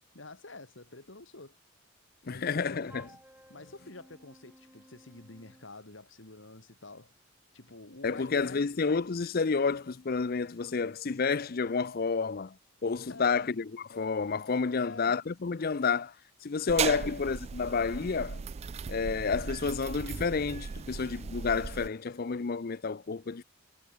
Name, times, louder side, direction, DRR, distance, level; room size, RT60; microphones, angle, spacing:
voice 1, 0.1-1.6 2.3-3.1 3.5-7.1 7.5-8.7 13.1-13.5 14.7-15.2 16.9-17.2, left 2 dB, 65° left, 2.4 m, -48 dB
voice 2, 2.2-3.1 8.0-12.6 12.8-16.1 16.4-18.4 18.9-23.4, left 5 dB, 45° left, 0.5 m, -30 dB
Wind instrument woodwind instrument, 2.9-5.7, right 1 dB, 10° right, 4.0 m, -56 dB
sound 1, 16.7-21.9, right 6 dB, 30° right, 0.3 m, -37 dB
head